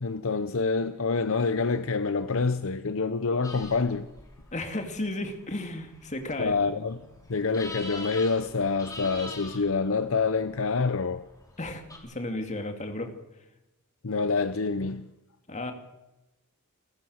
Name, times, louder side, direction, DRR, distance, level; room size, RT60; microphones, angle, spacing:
voice 1, 0.0-4.1 6.4-7.0 7.3-11.2 14.0-15.1, left 4 dB, 65° left, 0.8 m, -27 dB
sound 1, 3.4-12.0, left 2 dB, 15° left, 4.3 m, -45 dB
voice 2, 4.5-6.6 11.6-13.1 15.5-15.7, left 1 dB, 35° left, 2.5 m, -34 dB
29.5 x 13.5 x 6.5 m
head